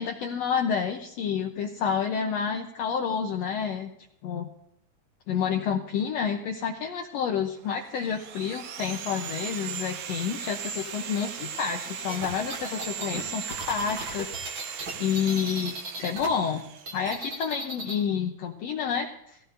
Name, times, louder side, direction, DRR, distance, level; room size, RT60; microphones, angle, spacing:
voice 1, 0.0-3.9 4.2-4.5 5.3-14.3 14.7-19.4, left 7 dB, 70° left, 3 dB, 1.8 m, -29 dB
Sawing, 7.7-17.5, right 7 dB, 70° right, 1.9 m, -38 dB
sound 1, 12.1-16.3 16.6-18.0, right 1 dB, 35° right, 2.1 m, -36 dB
17.5 x 16.0 x 2.7 m, 0.77 s
omnidirectional pair, 3.6 m